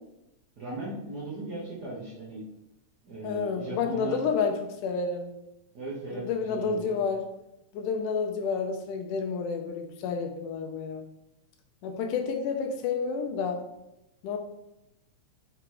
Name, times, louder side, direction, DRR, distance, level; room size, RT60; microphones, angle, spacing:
voice 1, 0.6-2.4 3.0-4.2 5.7-7.0, right 2 dB, 60° right, -6 dB, 1.0 m, -37 dB
voice 2, 3.2-4.5 4.8-5.3 6.1-7.2 7.7-11.0 11.8-13.6 14.2-14.4, left 5 dB, 90° left, 4 dB, 2.2 m, -30 dB
5.6 x 3.7 x 4.7 m, 0.88 s
omnidirectional pair, 3.6 m